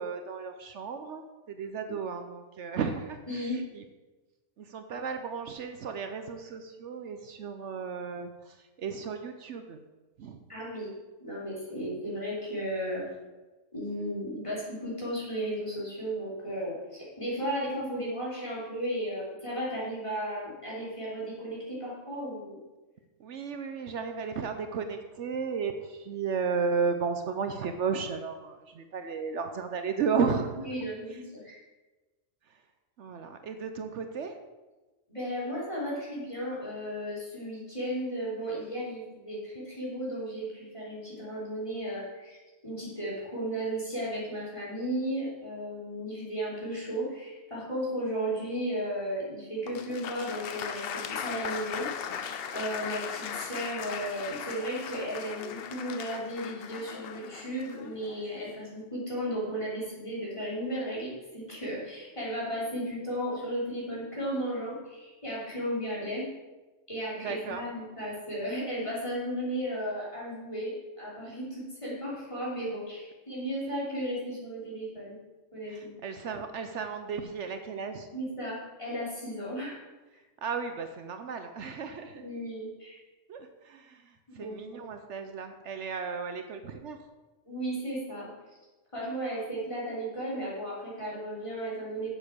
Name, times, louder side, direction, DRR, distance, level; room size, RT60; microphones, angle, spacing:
voice 1, 0.0-3.8 4.6-9.8 10.2-10.4 23.2-30.7 33.0-34.4 67.2-67.6 75.7-78.1 80.4-82.2 83.3-87.0, right 5 dB, 70° right, 7 dB, 1.0 m, -34 dB
voice 2, 3.3-3.6 10.5-10.9 11.2-13.0 13.7-22.6 30.6-31.6 35.1-42.4 42.6-51.9 52.5-66.3 66.9-75.2 75.5-76.0 78.1-79.8 82.2-83.0 84.3-84.8 87.4-88.3 88.9-92.1, equal, 25° left, -7 dB, 3.5 m, -35 dB
Applause, 49.7-58.6, left 7 dB, 60° left, 0.7 m, -38 dB
7.6 x 7.3 x 6.3 m, 1.2 s
omnidirectional pair, 1.3 m